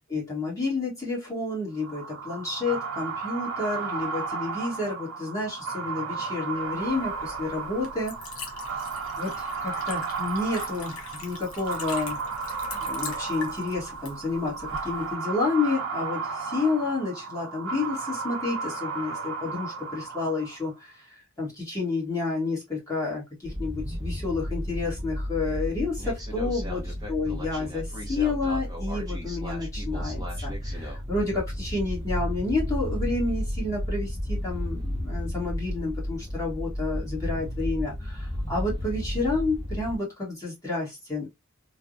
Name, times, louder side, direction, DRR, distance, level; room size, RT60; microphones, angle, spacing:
voice 1, 0.1-8.2 9.2-12.2 12.8-26.8 27.1-41.3, left 3 dB, 15° left, 1.1 m, -30 dB
sound 1, 1.8-20.7, right 5 dB, 85° right, 0.8 m, -34 dB
Liquid, 6.6-15.1, left 4 dB, 85° left, 1.1 m, -42 dB
sound 2, 23.4-40.0, equal, 20° right, 0.7 m, -32 dB
3.3 x 2.1 x 2.5 m
head